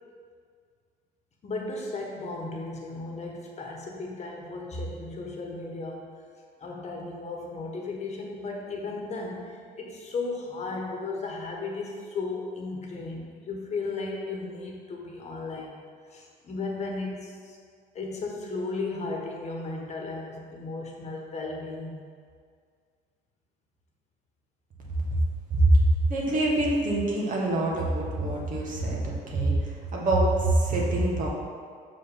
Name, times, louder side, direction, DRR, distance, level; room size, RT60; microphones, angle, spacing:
voice 1, 1.4-6.1 6.6-15.8 16.1-17.6 17.9-22.0, left 3 dB, 40° left, 0 dB, 1.3 m, -35 dB
voice 2, 25.5-29.6 29.9-31.3, right 1 dB, 50° right, -3 dB, 1.7 m, -24 dB
6.2 x 5.1 x 5.4 m, 2.1 s
cardioid pair, 110°, 17 cm